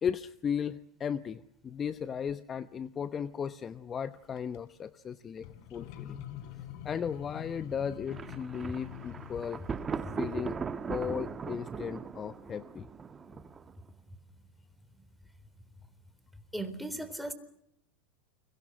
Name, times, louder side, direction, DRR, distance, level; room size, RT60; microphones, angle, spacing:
voice 1, 0.0-6.2 6.8-9.6 10.2-10.6 10.8-12.9, left 7 dB, 30° left, 13 dB, 0.9 m, -36 dB
sound 1, 4.2-4.6 5.4-10.4, left 11 dB, 60° left, 3.5 m, -46 dB
Thunder, 8.1-13.9, right 5 dB, 25° right, 1.4 m, -39 dB
voice 2, 16.5-17.3, right 1 dB, ahead, 10 dB, 3.9 m, -37 dB
29.5 x 24.0 x 6.3 m, 0.77 s
hypercardioid pair, 100°, 0 cm